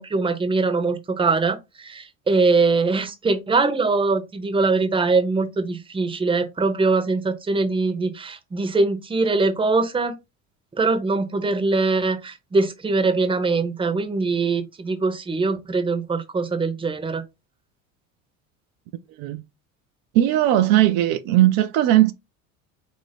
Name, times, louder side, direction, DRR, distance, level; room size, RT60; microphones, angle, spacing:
voice 1, 0.0-10.1 10.8-17.2, right 3 dB, 15° right, 0.7 m, -22 dB
voice 2, 20.1-22.1, right 13 dB, 60° right, 0.5 m, -18 dB
3.5 x 2.6 x 3.3 m
hypercardioid pair, 75°, 41 cm